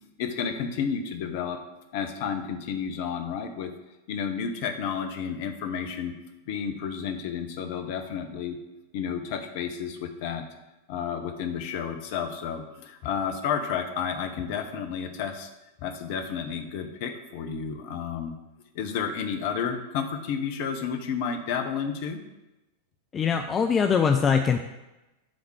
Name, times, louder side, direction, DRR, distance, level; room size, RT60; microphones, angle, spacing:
voice 1, 0.2-1.6 1.9-3.7 4.1-6.1 6.5-8.6 8.9-10.4 10.9-15.5 15.8-18.3 18.7-22.2, left 7 dB, 50° left, 7 dB, 0.8 m, -31 dB
voice 2, 23.1-24.7, left 6 dB, 25° left, 6 dB, 0.4 m, -22 dB
7.6 x 3.6 x 6.3 m, 1.0 s
figure-of-eight pair, 90°, 0 cm